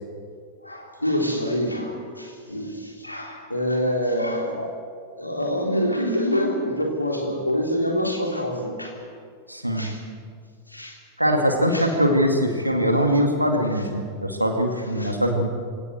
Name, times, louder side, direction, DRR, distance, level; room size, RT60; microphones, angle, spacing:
voice 1, 0.6-4.8 5.2-9.0 9.7-10.0 10.7-11.0 11.6-11.9 13.7-13.8 15.0-15.1, equal, 85° left, 1 dB, 3.5 m, -26 dB
voice 2, 9.5-9.9 11.2-15.5, equal, 90° right, 4 dB, 2.2 m, -22 dB
22.5 x 18.0 x 8.0 m, 2.2 s
figure-of-eight pair, 90°, 0 cm